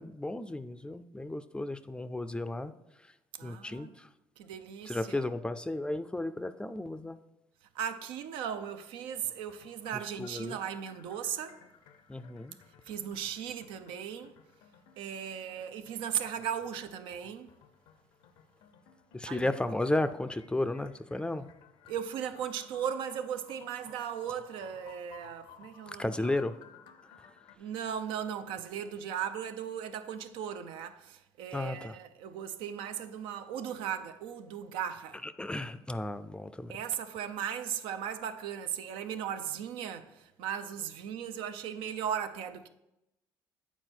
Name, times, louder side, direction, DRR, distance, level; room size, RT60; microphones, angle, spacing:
voice 1, 0.0-2.7 3.0-3.1 3.4-4.1 4.8-7.2 10.2-10.6 12.1-12.6 19.1-21.5 26.0-26.6 27.0-27.3 31.5-32.0 35.2-36.7, left 2 dB, 10° left, 0.4 m, -34 dB
voice 2, 3.4-3.9 4.4-5.3 7.7-11.6 12.9-14.4 15.0-17.5 19.3-19.5 21.9-26.4 27.6-35.2 36.7-42.7, right 8 dB, 80° right, 0.5 m, -37 dB
sound 1, 9.2-27.6, left 8 dB, 75° left, 0.6 m, -58 dB
8.2 x 4.3 x 4.5 m
supercardioid pair, 75°, 9 cm